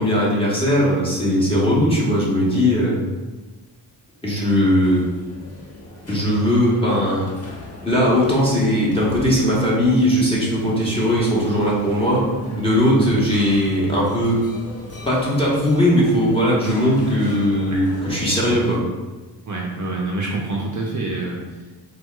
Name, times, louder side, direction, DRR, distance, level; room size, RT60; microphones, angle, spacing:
voice 1, 0.0-3.1 4.2-5.1 6.1-7.3 7.8-12.2 12.6-14.4 15.1-18.8, equal, 10° left, -7 dB, 1.1 m, -19 dB
sound 1, 4.4-18.8, left 2 dB, 35° left, 0.7 m, -38 dB
voice 2, 19.5-21.4, right 2 dB, 45° right, -3 dB, 0.6 m, -26 dB
4.3 x 2.2 x 2.2 m, 1.2 s
cardioid pair, 65°, 45 cm